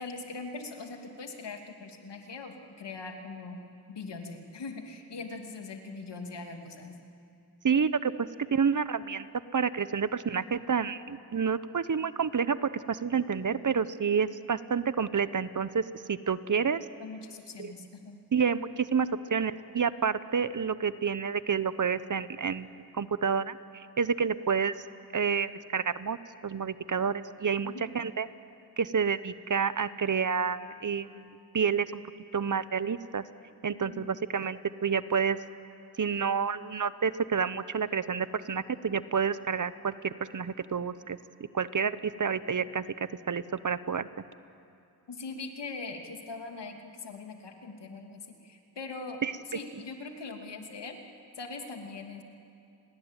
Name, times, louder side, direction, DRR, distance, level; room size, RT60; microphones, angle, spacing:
voice 1, 0.0-3.6 3.9-7.0 17.0-18.2 27.6-27.9 33.7-34.1 45.1-49.2 49.5-51.0 51.4-52.2, left 3 dB, 80° left, 3 dB, 2.9 m, -41 dB
voice 2, 7.6-8.1 8.5-9.3 9.5-16.9 17.6-17.7 18.3-22.7 22.9-24.7 25.1-26.2 26.4-28.3 28.8-32.0 32.3-33.2 33.6-35.4 36.0-41.2 41.5-42.8 43.3-44.1 49.2-49.3, right 6 dB, 45° right, 14 dB, 1.0 m, -29 dB
30.0 x 21.0 x 9.1 m, 2.5 s
cardioid pair, 55°, 41 cm